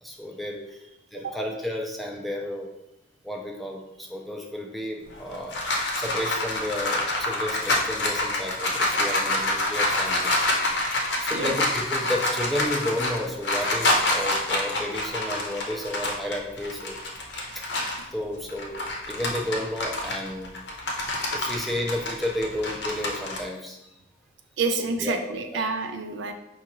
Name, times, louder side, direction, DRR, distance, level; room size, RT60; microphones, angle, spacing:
voice 1, 0.0-2.7 3.2-5.6 5.9-10.6 11.2-17.0 17.6-17.7 18.1-20.5 21.3-23.8 25.0-25.2 25.5-25.7, left 1 dB, ahead, 0 dB, 0.4 m, -32 dB
sound 1, 5.1-18.1 18.5-23.4, left 2 dB, 70° left, 0.7 m, -27 dB
voice 2, 24.6-26.3, right 3 dB, 85° right, 6 dB, 0.4 m, -28 dB
5.4 x 2.4 x 3.0 m, 0.88 s
head